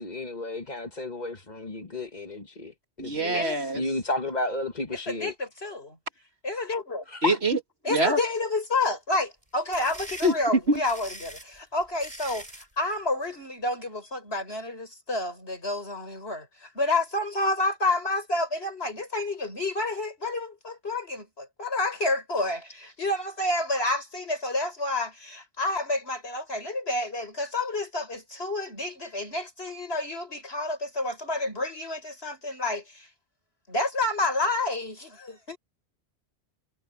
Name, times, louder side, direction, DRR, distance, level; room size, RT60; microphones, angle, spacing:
voice 1, 0.0-5.3 7.1-7.4, left 2 dB, 40° left, 2.0 m, -32 dB
voice 2, 3.0-3.8 7.2-7.6 7.9-8.2 10.2-10.3 10.7-10.8, right 1 dB, 65° right, 2.9 m, -24 dB
voice 3, 4.9-6.0 6.4-7.1 7.8-33.1 33.7-35.6, left 2 dB, 65° left, 6.9 m, -29 dB
sound 1, 9.4-12.7, right 1 dB, 35° right, 8.4 m, -42 dB
omnidirectional pair, 1.1 m